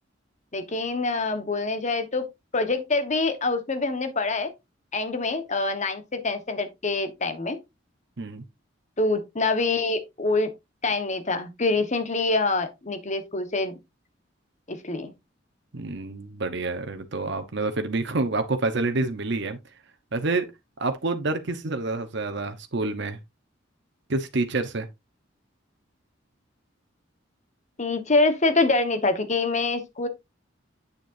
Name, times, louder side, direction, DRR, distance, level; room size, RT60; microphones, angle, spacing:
voice 1, 0.5-2.3 2.5-4.5 4.9-7.6 9.0-10.5 10.8-13.8 14.7-15.1 27.8-30.1, left 3 dB, 40° left, 1.2 m, -25 dB
voice 2, 15.7-19.6 20.1-20.5 20.8-23.2 24.1-24.9, right 3 dB, 65° right, 1.0 m, -28 dB
8.2 x 6.7 x 2.6 m
head